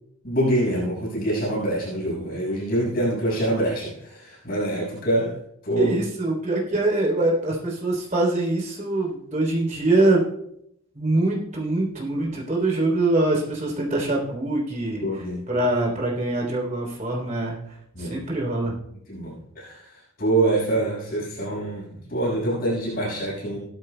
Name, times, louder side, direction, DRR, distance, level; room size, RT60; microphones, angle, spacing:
voice 1, 0.2-5.4 5.6-5.9 15.0-15.4 17.9-18.2 19.1-19.8 20.2-23.6, right 1 dB, 45° left, -5 dB, 5.9 m, -25 dB
voice 2, 5.8-10.2 10.9-17.6 18.0-18.8, right 2 dB, 35° right, -2 dB, 3.4 m, -24 dB
17.0 x 13.0 x 2.3 m, 0.74 s
head